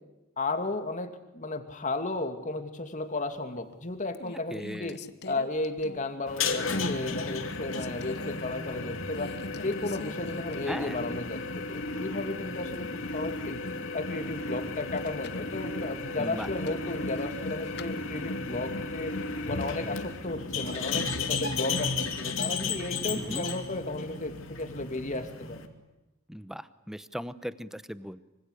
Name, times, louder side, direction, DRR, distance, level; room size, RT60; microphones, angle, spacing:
voice 1, 0.4-5.0 5.3-9.3 9.6-13.6 13.9-19.2 19.5-25.6, left 2 dB, 35° left, 7 dB, 2.7 m, -34 dB
sound 1, 3.4-3.7 4.1-6.3 6.7-7.0 7.4-8.4 9.1-10.9 11.2-11.3 14.8-15.5 16.4-17.9, left 2 dB, 55° left, 1.2 m, -42 dB
voice 2, 4.5-4.9 10.7-11.0 16.2-16.5 23.1-23.4 26.3-28.2, equal, ahead, 13 dB, 0.9 m, -38 dB
sound 2, 6.3-25.7, left 3 dB, 70° left, 2.9 m, -34 dB
26.0 x 25.0 x 8.4 m, 0.98 s
head